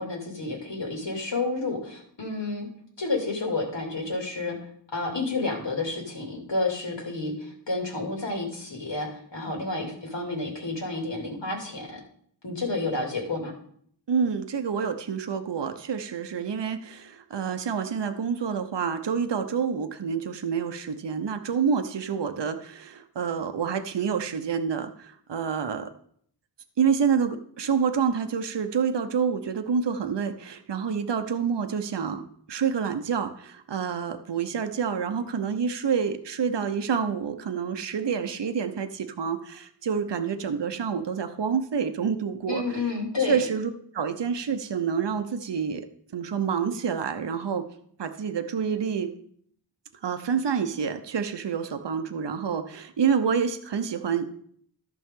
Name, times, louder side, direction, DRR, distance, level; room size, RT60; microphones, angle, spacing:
voice 1, 0.0-2.7 3.0-4.6 4.9-12.0 12.4-13.5 42.5-43.4, left 3 dB, 65° left, 0 dB, 2.6 m, -30 dB
voice 2, 14.1-25.9 26.8-42.8 43.2-45.9 46.1-47.6 48.0-49.1 50.0-54.3, right 6 dB, 65° right, 8 dB, 0.8 m, -28 dB
14.0 x 6.1 x 3.7 m, 0.63 s
wide cardioid pair, 70°, 46 cm